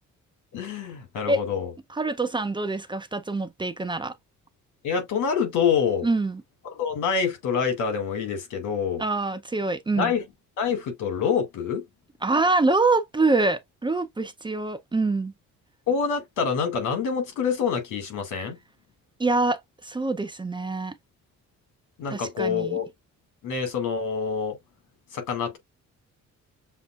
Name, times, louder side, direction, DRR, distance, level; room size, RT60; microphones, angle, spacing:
voice 1, 0.5-1.7 4.8-6.1 6.7-9.0 10.0-10.2 10.6-11.8 15.9-18.6 22.0-22.9 23.4-24.6 25.1-25.6, left 6 dB, 90° left, 2.0 m, -26 dB
voice 2, 1.9-4.1 6.0-6.4 9.0-10.1 12.2-15.3 19.2-20.9 22.1-22.8, right 3 dB, 15° right, 0.5 m, -25 dB
6.9 x 2.5 x 2.3 m
cardioid pair, 130°, 30 cm